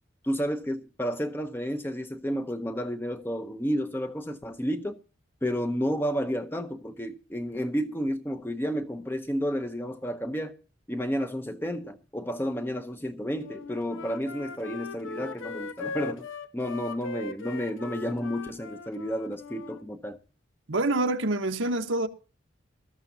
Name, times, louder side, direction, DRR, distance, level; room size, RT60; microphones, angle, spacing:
voice 1, 0.2-4.9 5.4-10.6 10.9-16.3 16.5-20.2, equal, 10° left, 0.7 m, -31 dB
Wind instrument woodwind instrument, 13.4-19.8, left 4 dB, 85° left, 0.8 m, -39 dB
voice 2, 20.7-22.1, right 2 dB, 80° right, 1.2 m, -26 dB
19.0 x 13.0 x 2.8 m
head